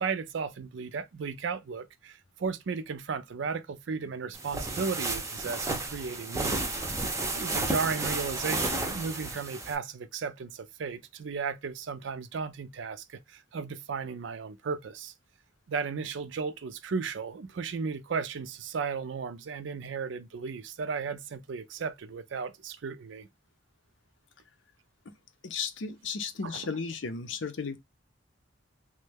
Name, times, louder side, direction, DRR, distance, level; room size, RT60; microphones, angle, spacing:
voice 1, 0.0-6.8 7.3-15.1 15.7-23.3 26.4-26.6, right 5 dB, 75° right, 0.4 m, -35 dB
sound 1, 4.3-9.8, right 2 dB, 15° right, 0.5 m, -32 dB
voice 2, 25.4-27.8, left 5 dB, 85° left, 0.6 m, -34 dB
3.1 x 2.2 x 3.3 m
head